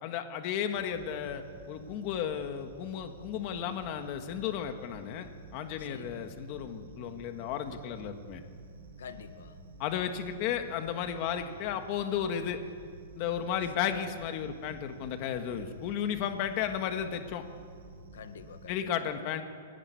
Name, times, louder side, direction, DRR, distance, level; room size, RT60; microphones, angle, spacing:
voice 1, 0.0-8.4 9.8-12.6 13.1-17.4 18.7-19.4, left 9 dB, 30° left, 7 dB, 1.5 m, -34 dB
sound 1, 0.7-18.7, right 3 dB, 80° right, 4.9 m, -50 dB
voice 2, 5.8-6.3 9.0-9.6 18.1-18.9, left 8 dB, 70° left, 10 dB, 1.5 m, -47 dB
22.5 x 18.0 x 9.6 m, 2.1 s
hypercardioid pair, 175°, 0 cm